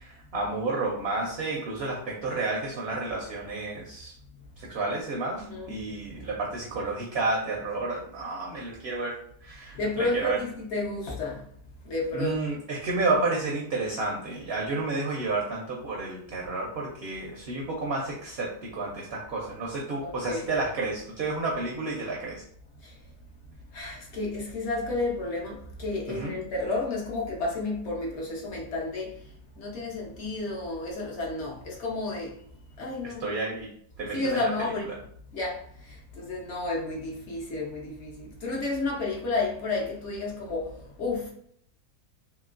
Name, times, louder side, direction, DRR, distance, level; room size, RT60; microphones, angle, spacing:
voice 1, 0.0-4.1 4.6-10.4 12.1-22.4 26.1-26.3 33.0-33.7 34.0-34.7, right 3 dB, 65° right, 0.6 m, -31 dB
voice 2, 5.5-5.8 6.1-6.3 9.7-11.5 11.8-12.4 20.0-20.5 22.8-23.0 23.7-29.2 29.5-32.4 32.8-33.3 34.1-34.9 35.3-41.3, left 2 dB, 55° left, 0.9 m, -31 dB
2.9 x 2.9 x 2.4 m
omnidirectional pair, 1.6 m